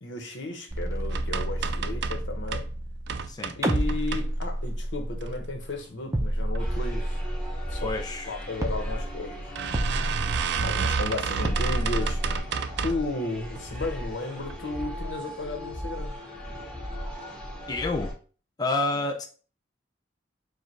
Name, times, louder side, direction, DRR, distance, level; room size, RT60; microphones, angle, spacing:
voice 1, 0.0-2.7 3.6-7.2 7.7-7.9 8.3-9.5 10.6-16.2, left 2 dB, 75° left, 3 dB, 1.1 m, -34 dB
sound 1, 0.7-3.3 3.6-5.7 6.1-8.3 8.6-9.3 9.7-11.0 11.4-12.4, right 1 dB, 20° right, 0.7 m, -30 dB
sound 2, 1.1-2.7 3.1-4.7 5.2-5.8 6.2-6.6 6.9-7.0 7.3-7.4 8.4-8.5 8.9-9.0 9.6-13.1 13.6-14.0 14.4-14.6 14.9-15.0, right 6 dB, 65° right, 0.4 m, -31 dB
sound 3, 6.6-18.1, equal, 5° left, 1.8 m, -37 dB
voice 2, 7.8-8.3 17.7-18.1 18.6-19.3, left 2 dB, 20° left, 4 dB, 0.4 m, -29 dB
5.0 x 2.5 x 4.4 m, 0.38 s
head